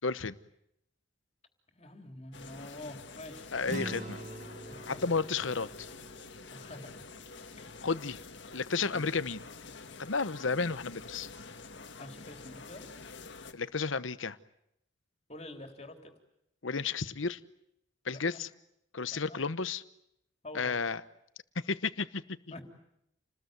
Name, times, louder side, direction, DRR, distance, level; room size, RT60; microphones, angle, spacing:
voice 1, 0.0-0.4 3.5-4.2 4.9-5.9 7.8-8.2 8.5-9.4 10.0-11.3 13.5-14.4 16.6-17.4 18.0-18.5 18.9-19.8 20.5-21.0 21.7-22.4, left 4 dB, 85° left, 14 dB, 1.0 m, -32 dB
voice 2, 1.7-3.7 4.7-5.0 6.5-7.0 7.6-7.9 8.9-9.2 12.0-12.8 15.3-16.1 18.1-18.4 19.1-19.4 20.4-20.7 22.5-22.6, left 1 dB, 35° left, 4 dB, 3.6 m, -47 dB
sound 1, 2.3-13.5, left 4 dB, 65° left, 1.8 m, -48 dB
sound 2, 3.7-8.3, right 1 dB, 40° right, 1.5 m, -45 dB
29.0 x 20.0 x 9.4 m, 0.79 s
head